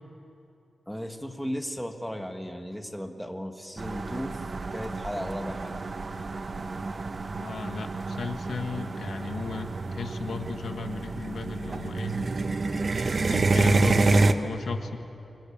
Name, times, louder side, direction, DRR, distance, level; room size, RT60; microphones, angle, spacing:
voice 1, 0.9-4.4 4.7-5.8, equal, ahead, 5 dB, 1.7 m, -35 dB
sound 1, 3.8-14.3, right 3 dB, 45° right, 1.0 m, -28 dB
voice 2, 7.3-12.1 13.0-15.0, left 5 dB, 75° left, 6 dB, 1.5 m, -35 dB
29.5 x 22.5 x 7.3 m, 2.8 s
wide cardioid pair, 105°, 0 cm